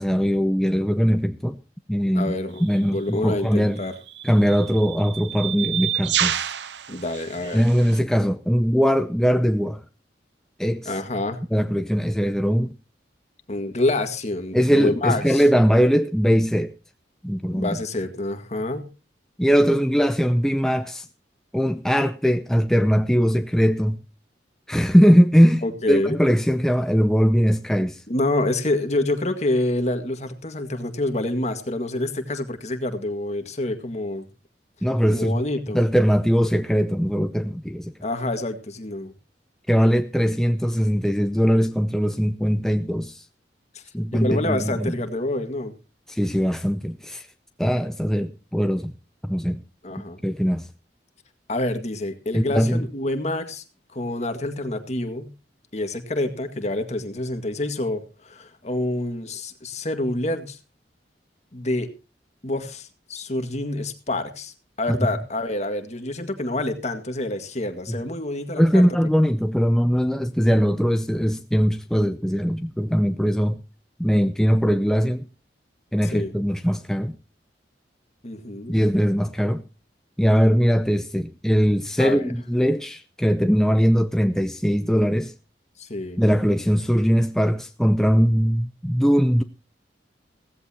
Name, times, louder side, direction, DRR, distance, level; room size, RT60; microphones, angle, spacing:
voice 1, 0.0-1.6 1.9-2.4 2.6-3.8 4.2-6.4 7.5-9.8 10.6-10.9 11.5-12.7 14.5-16.7 17.2-17.8 19.4-21.1 21.5-24.0 24.7-28.0 34.8-35.4 35.7-37.9 39.7-43.2 43.9-44.9 46.1-47.3 47.6-48.9 49.2-49.6 50.2-50.7 52.3-52.8 67.9-68.0 68.6-73.6 74.0-75.3 75.9-77.2 78.7-79.6 80.2-85.3 86.2-89.4, equal, 5° left, 0.5 m, -20 dB
voice 2, 2.1-4.0 6.9-7.6 10.9-11.4 13.5-15.4 17.5-18.9 25.6-26.2 28.1-34.3 35.1-35.8 38.0-39.1 43.7-43.8 44.1-45.7 49.8-50.2 51.5-53.6 53.9-55.3 55.7-60.6 61.5-61.9 62.4-68.9 76.0-76.3 78.2-78.8 82.0-82.3 85.8-86.2, left 2 dB, 40° left, 1.9 m, -27 dB
sound 1, 2.6-2.8 3.8-8.0, right 11 dB, 80° right, 0.7 m, -29 dB
16.5 x 15.0 x 2.9 m
head